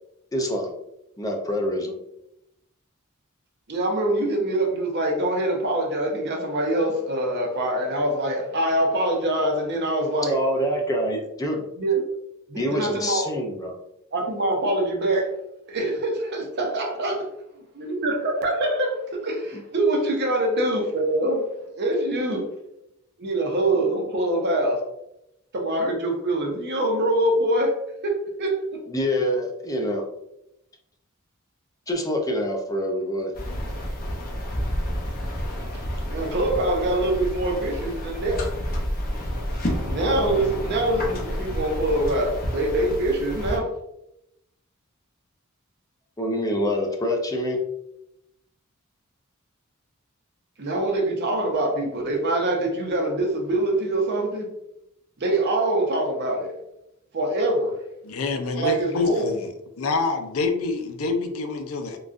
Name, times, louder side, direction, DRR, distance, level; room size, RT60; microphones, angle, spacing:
voice 1, 0.3-0.7 1.2-2.0 10.3-11.6 12.6-13.7 19.5-19.6 28.9-30.0 31.9-33.3 46.2-47.6, equal, 15° left, 1 dB, 0.5 m, -26 dB
voice 2, 3.7-10.4 11.8-12.0 12.5-13.2 14.1-15.3 15.7-17.1 17.8-21.4 21.8-22.5 23.2-24.8 25.5-27.7 28.0-28.8 36.1-38.4 39.8-43.7 50.6-54.5 55.2-56.5 57.1-57.7 58.6-59.3, right 1 dB, 50° right, 1 dB, 0.7 m, -24 dB
sound 1, 33.3-43.6, equal, 45° left, 0.8 m, -30 dB
voice 3, 58.0-59.5 59.8-62.0, left 3 dB, 75° left, 6 dB, 0.5 m, -26 dB
3.8 x 2.3 x 2.4 m, 0.83 s
head